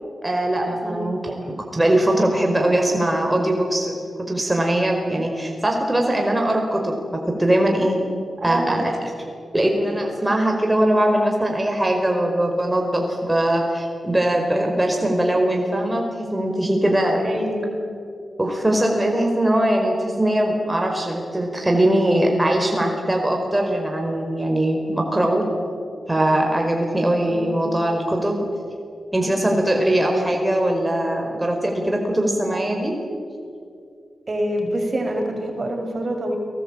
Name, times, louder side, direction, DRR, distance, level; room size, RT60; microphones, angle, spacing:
voice 1, 0.2-1.3 1.7-3.9 4.3-6.9 7.4-8.0 8.4-8.9 9.5-17.2 18.4-25.4 26.1-28.4 29.1-32.9, right 1 dB, 15° right, 2 dB, 4.8 m, -21 dB
voice 2, 8.4-8.9 17.2-17.7 27.2-27.6 34.3-36.4, right 1 dB, 45° right, 3 dB, 6.1 m, -26 dB
29.5 x 20.0 x 8.8 m, 2.4 s
cardioid pair, 60°, 0 cm